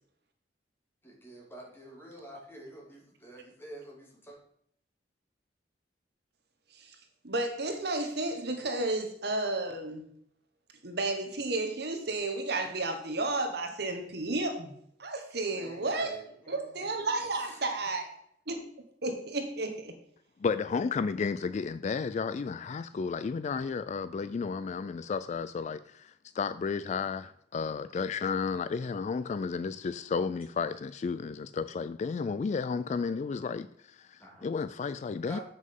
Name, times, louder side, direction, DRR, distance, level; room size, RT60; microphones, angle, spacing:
voice 1, 1.0-4.4 15.5-16.9 34.2-34.5 35.2-35.4, right 1 dB, 15° left, 2.6 m, -48 dB
voice 2, 7.2-10.1 10.8-14.7 15.0-18.1 18.5-18.6 19.0-20.0, right 2 dB, 65° right, 1.5 m, -32 dB
voice 3, 20.4-35.4, left 5 dB, 40° left, 0.3 m, -33 dB
7.7 x 6.3 x 5.4 m
head